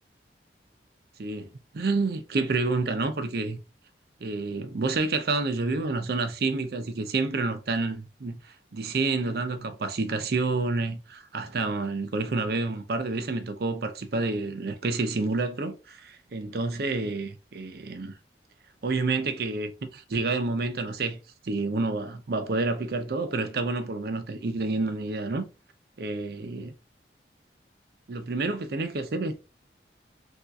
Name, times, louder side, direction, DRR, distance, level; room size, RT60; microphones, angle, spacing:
voice 1, 1.2-1.5 1.7-3.6 4.2-18.1 18.8-25.4 26.0-26.7 28.1-29.3, right 3 dB, 60° right, 0.5 m, -29 dB
3.5 x 2.4 x 2.6 m
head